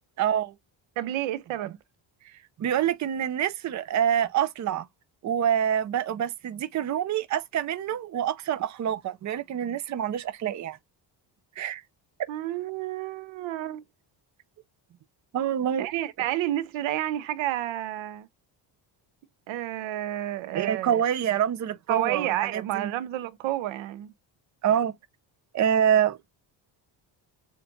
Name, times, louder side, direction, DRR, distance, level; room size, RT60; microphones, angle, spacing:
voice 1, 0.2-0.5 2.6-4.9 5.2-10.8 11.6-11.8 15.3-15.9 20.5-22.9 24.6-24.9 25.5-26.2, right 9 dB, 40° right, 0.6 m, -26 dB
voice 2, 1.0-1.8 12.3-13.8 15.8-18.3 19.5-21.0 21.9-24.1, right 13 dB, 75° right, 0.7 m, -30 dB
6.9 x 2.5 x 2.6 m
cardioid pair, 115°, 46 cm